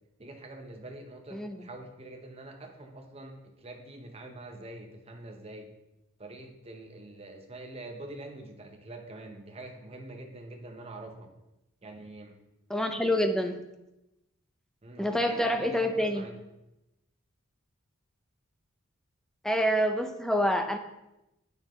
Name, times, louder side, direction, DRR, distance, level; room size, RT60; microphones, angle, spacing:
voice 1, 0.2-5.7 6.2-11.3 11.8-12.4 14.8-16.4, right 2 dB, 30° right, 3 dB, 0.8 m, -45 dB
voice 2, 1.3-1.7 12.7-13.6 15.0-16.2 19.4-20.8, equal, ahead, 6 dB, 0.4 m, -27 dB
8.8 x 5.3 x 3.1 m, 0.93 s
head